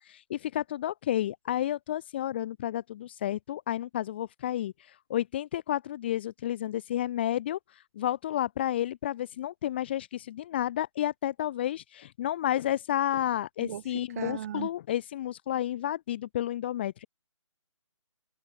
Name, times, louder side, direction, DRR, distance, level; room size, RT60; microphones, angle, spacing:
voice 1, 0.0-4.7 5.1-7.6 8.0-17.1, left 12 dB, 20° left, 0.6 m, -31 dB
voice 2, 13.6-14.7, right 11 dB, 30° right, 1.6 m, -37 dB
figure-of-eight pair, 150°, 17 cm